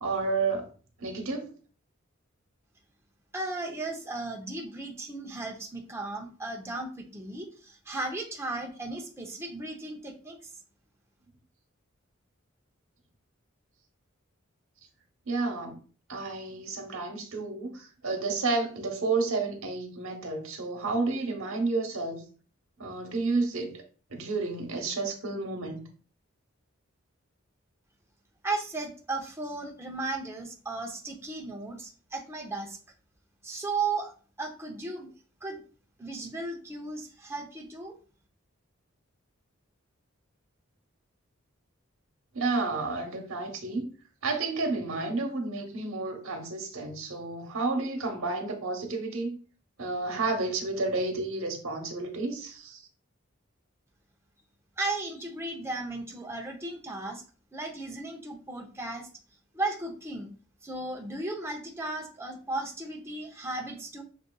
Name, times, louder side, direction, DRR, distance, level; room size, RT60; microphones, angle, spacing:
voice 1, 0.0-0.7 1.0-1.5 15.3-15.8 16.1-22.2 22.8-23.8 24.1-25.9 42.3-43.9 44.2-49.4 49.8-52.9, right 3 dB, 90° right, 1.0 m, -31 dB
voice 2, 3.3-10.5 28.4-32.8 33.4-34.1 34.4-35.1 35.4-35.6 36.0-38.0 54.8-57.2 57.5-59.1 59.5-60.3 60.6-64.0, right 2 dB, 15° right, 0.7 m, -35 dB
6.6 x 2.5 x 2.3 m
head